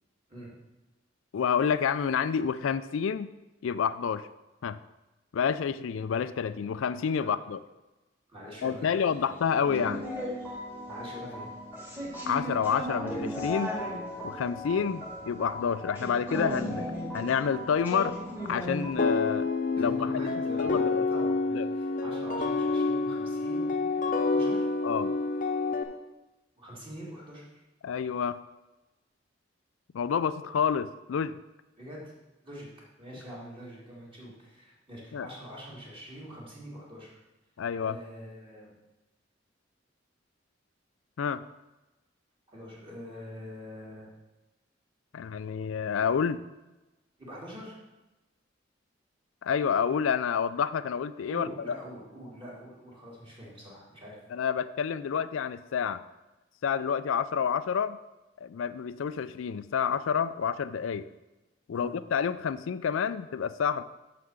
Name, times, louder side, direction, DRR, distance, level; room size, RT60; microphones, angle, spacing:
voice 1, 1.3-3.3 3.6-4.3 4.6-4.8 5.3-7.6 8.6-10.1 12.3-13.8 14.2-16.9 17.1-18.2 18.5-19.5 19.8-21.1 21.5-21.7 24.8-25.2 27.8-28.4 29.9-31.4 35.1-35.3 37.6-38.0 41.2-41.5 45.1-46.4 49.4-51.7 54.3-56.0 56.6-58.0 58.4-61.1 61.7-63.8, left 7 dB, 90° left, 14 dB, 0.4 m, -29 dB
voice 2, 8.3-8.9 9.2-9.3 10.9-11.5 19.7-24.7 26.6-27.6 31.8-32.0 32.4-32.7 33.0-37.2 37.8-38.7 42.5-44.1 47.2-47.8 51.3-54.2 61.7-61.9, equal, 30° right, -5 dB, 2.9 m, -44 dB
sound 1, 9.6-18.9, equal, 10° right, 1.9 m, -36 dB
sound 2, 19.0-25.8, left 3 dB, 45° left, 0.8 m, -28 dB
6.7 x 5.8 x 6.3 m, 1.0 s
head